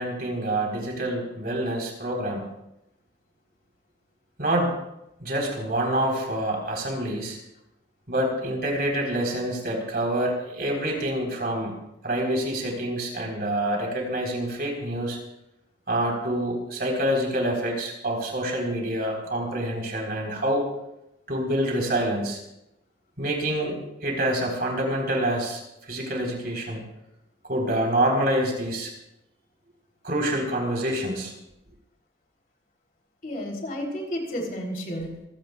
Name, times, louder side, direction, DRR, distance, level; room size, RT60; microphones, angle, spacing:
voice 1, 0.0-2.4 4.4-4.7 5.2-7.4 8.1-11.8 12.0-15.2 15.9-20.6 21.3-22.4 23.2-25.6 25.9-26.8 27.5-28.9 30.0-31.3, right 1 dB, 55° right, 0 dB, 4.2 m, -26 dB
voice 2, 33.2-35.3, equal, 50° left, 0 dB, 3.6 m, -32 dB
27.0 x 16.0 x 2.4 m, 0.87 s
head